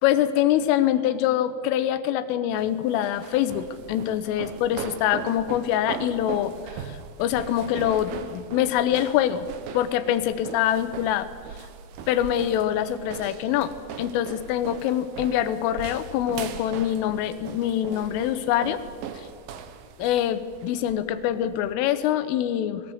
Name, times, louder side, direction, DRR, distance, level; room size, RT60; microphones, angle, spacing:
voice 1, 0.0-6.5 6.8-6.9 7.2-9.5 9.7-11.3 12.1-13.7 14.0-18.8 20.0-22.8, left 11 dB, 80° left, 11 dB, 3.5 m, -24 dB
sound 1, 2.5-21.7, right 7 dB, 80° right, 2.1 m, -39 dB
21.5 x 17.5 x 7.9 m, 2.1 s
omnidirectional pair, 5.8 m